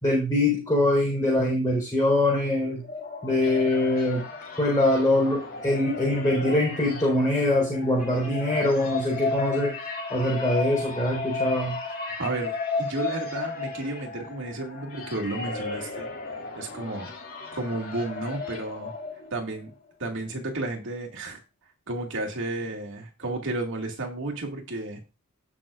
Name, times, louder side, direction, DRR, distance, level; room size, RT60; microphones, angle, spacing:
voice 1, 0.0-2.8 3.2-4.2 4.6-9.7 10.1-11.8, left 1 dB, 15° left, -4 dB, 4.3 m, -23 dB
sound 1, 2.6-19.6, left 4 dB, 45° left, 2.4 m, -34 dB
voice 2, 12.2-12.5 12.8-16.1 16.5-17.1 17.5-18.9 19.3-19.7 20.0-21.4 21.9-25.0, right 2 dB, 60° right, 2 dB, 2.2 m, -32 dB
17.0 x 6.2 x 2.5 m, 0.28 s
head